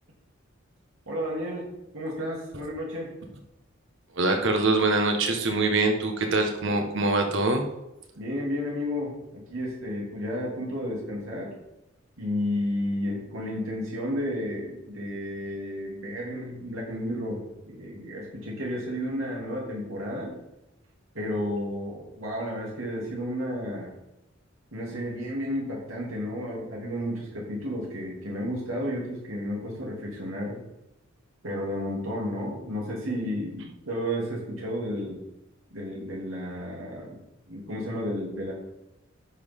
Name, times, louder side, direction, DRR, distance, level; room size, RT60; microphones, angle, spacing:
voice 1, 1.1-1.7 1.9-3.1 8.1-11.5 12.2-20.3 21.1-23.9 24.7-30.6 31.4-35.2 35.7-38.5, equal, 85° right, -4 dB, 3.0 m, -32 dB
voice 2, 4.2-7.6, right 2 dB, 65° right, 4 dB, 1.5 m, -24 dB
10.5 x 6.5 x 3.7 m, 0.92 s
head